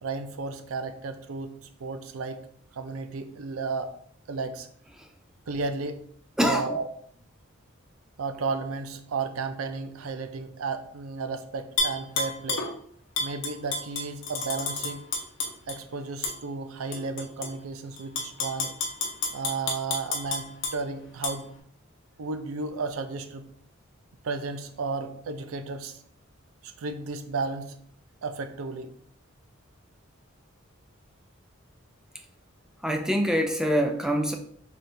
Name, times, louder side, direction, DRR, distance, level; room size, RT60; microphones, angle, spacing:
voice 1, 0.0-2.4 2.7-3.9 4.3-4.7 5.5-6.1 6.4-6.9 8.2-12.7 13.2-15.1 15.7-18.7 19.3-21.5 22.2-23.5 24.2-26.0 26.6-27.8 28.2-28.9, right 4 dB, 85° right, 9 dB, 0.5 m, -33 dB
Tap / Glass, 11.8-12.7 13.2-15.8 16.2-16.4 16.9-17.5 18.0-20.8 21.2-21.3, left 3 dB, 60° left, 0.7 m, -30 dB
voice 2, 32.8-34.3, equal, 5° right, 4 dB, 0.3 m, -24 dB
4.3 x 3.6 x 2.6 m, 0.63 s
head